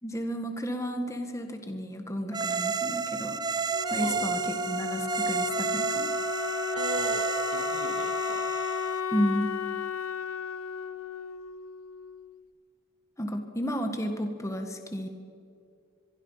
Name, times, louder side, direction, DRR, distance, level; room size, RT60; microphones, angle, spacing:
voice 1, 0.0-3.4 3.9-4.4 4.6-6.1 9.1-9.5 13.2-15.1, equal, 15° left, 5 dB, 1.7 m, -32 dB
sound 1, 2.3-9.0, right 5 dB, 20° right, 0.7 m, -31 dB
Wind instrument woodwind instrument, 3.7-12.4, left 6 dB, 80° left, 0.9 m, -34 dB
voice 2, 6.7-8.5, right 2 dB, 80° right, 6 dB, 2.4 m, -39 dB
24.5 x 23.0 x 5.8 m, 2.4 s
head